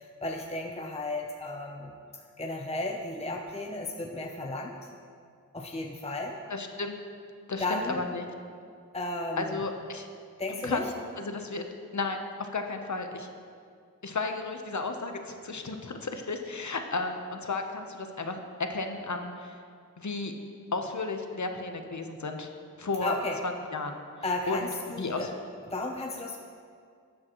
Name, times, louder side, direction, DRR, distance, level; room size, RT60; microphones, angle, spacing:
voice 1, 0.0-4.9 5.5-6.4 7.6-8.0 8.9-9.6 10.4-10.9 23.0-23.4 24.2-25.3 25.6-26.4, left 2 dB, 20° left, 1 dB, 0.7 m, -34 dB
voice 2, 6.5-7.0 7.5-8.2 9.4-10.1 10.6-10.9 11.2-11.7 11.9-13.3 14.0-18.4 18.7-19.6 20.0-20.3 20.7-22.5 22.8-23.1 23.4-24.0 24.5-25.3, left 3 dB, 55° left, 5 dB, 0.9 m, -33 dB
12.0 x 7.5 x 3.0 m, 2.2 s
cardioid pair, 45°, 35 cm